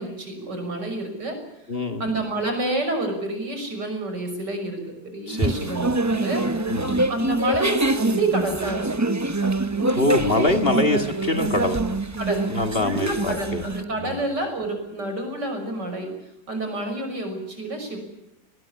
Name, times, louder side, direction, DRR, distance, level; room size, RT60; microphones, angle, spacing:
voice 1, 0.0-1.4 2.0-6.8 7.1-9.0 9.8-10.0 12.2-12.5 12.7-16.1 16.5-18.0, right 2 dB, 85° right, 6 dB, 6.8 m, -28 dB
voice 2, 1.7-2.0 5.3-5.5 6.7-7.0 10.0-11.8 12.5-13.6 14.0-14.2, left 2 dB, 35° left, 7 dB, 2.2 m, -24 dB
sound 1, 5.4-13.8, right 2 dB, 20° right, 0.4 m, -25 dB
22.5 x 20.0 x 9.8 m, 0.91 s
omnidirectional pair, 1.8 m